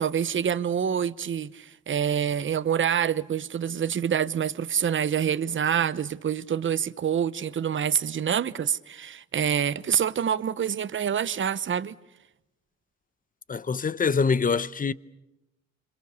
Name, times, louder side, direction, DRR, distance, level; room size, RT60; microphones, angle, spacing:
voice 1, 0.0-12.0, right 8 dB, 40° right, 0.9 m, -26 dB
voice 2, 13.5-14.9, left 5 dB, 30° left, 0.8 m, -24 dB
27.5 x 25.0 x 6.9 m
cardioid pair, 90°, 30 cm